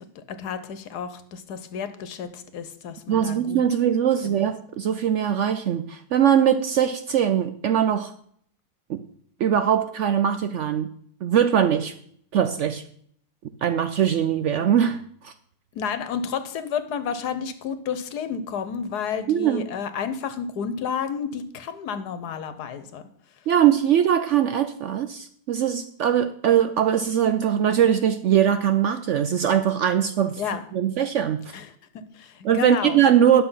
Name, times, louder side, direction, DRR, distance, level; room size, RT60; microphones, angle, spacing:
voice 1, 0.1-3.6 4.2-4.5 15.7-23.0 30.4-30.6 31.5-31.7 31.9-33.0, left 7 dB, 85° left, 11 dB, 1.5 m, -31 dB
voice 2, 3.1-8.1 8.9-9.0 9.4-10.9 11.2-11.9 12.3-12.8 13.6-15.3 19.3-19.7 23.5-30.4 30.7-31.5 32.4-33.4, right 9 dB, 70° right, 10 dB, 0.7 m, -21 dB
10.0 x 6.7 x 5.6 m, 0.64 s
omnidirectional pair, 1.7 m